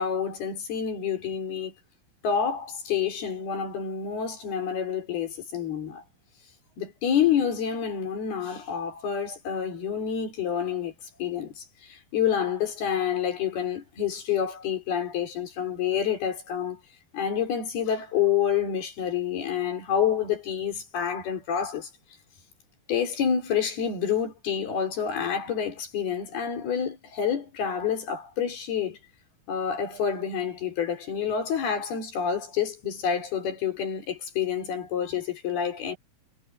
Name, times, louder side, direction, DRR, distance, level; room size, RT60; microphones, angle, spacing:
voice 1, 0.0-1.7 2.2-6.0 6.8-10.9 11.2-16.8 17.1-21.9 22.9-29.0 29.5-36.0, left 8 dB, 85° left, 6.3 m, -28 dB
omnidirectional pair, 4.3 m